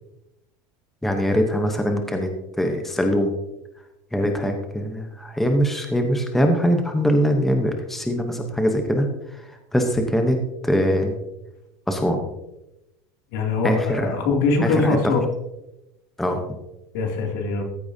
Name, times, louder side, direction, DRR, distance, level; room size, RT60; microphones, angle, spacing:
voice 1, 1.0-2.3 2.6-3.3 4.1-9.1 9.3-11.1 11.9-12.2 13.6-14.1 14.6-15.0 16.2-16.4, equal, ahead, 4 dB, 0.8 m, -22 dB
voice 2, 13.3-15.2 16.9-17.6, left 3 dB, 70° left, 2 dB, 2.5 m, -22 dB
14.0 x 8.7 x 2.7 m, 0.91 s
supercardioid pair, 160°, 10 cm